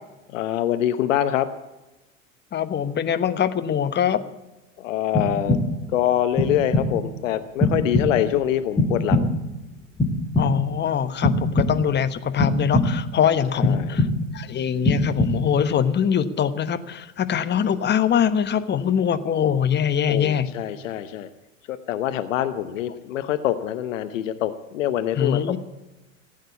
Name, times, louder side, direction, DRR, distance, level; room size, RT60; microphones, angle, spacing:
voice 1, 0.3-1.5 4.8-5.6 5.9-9.3 13.6-14.0 20.1-21.3 21.7-25.6, left 11 dB, 75° left, 11 dB, 1.0 m, -25 dB
voice 2, 2.5-4.2 10.4-14.1 14.3-20.5 25.2-25.6, left 8 dB, 25° left, 12 dB, 1.2 m, -23 dB
sound 1, 5.1-5.9 6.4-7.1 7.6-8.4 8.8-9.6 10.0-10.8 11.2-12.0 12.4-13.2 13.6-14.4 14.8-15.6, left 1 dB, 10° left, 2.2 m, -23 dB
16.0 x 9.2 x 8.4 m, 1.0 s
hypercardioid pair, 85°, 39 cm